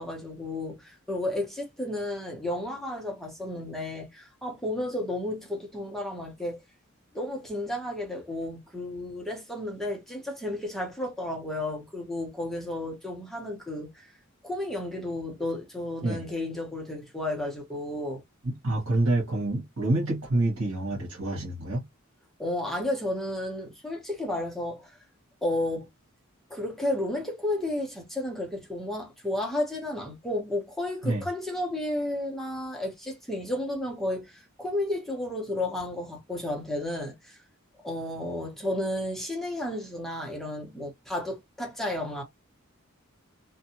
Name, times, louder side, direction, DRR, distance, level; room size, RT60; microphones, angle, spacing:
voice 1, 0.0-6.6 7.1-14.1 14.4-18.2 22.4-25.0 25.4-25.9 26.5-37.4 37.8-42.2, left 1 dB, ahead, 0.7 m, -32 dB
voice 2, 18.4-21.8 31.0-31.2, right 2 dB, 85° right, 1.2 m, -27 dB
2.6 x 2.2 x 2.7 m
head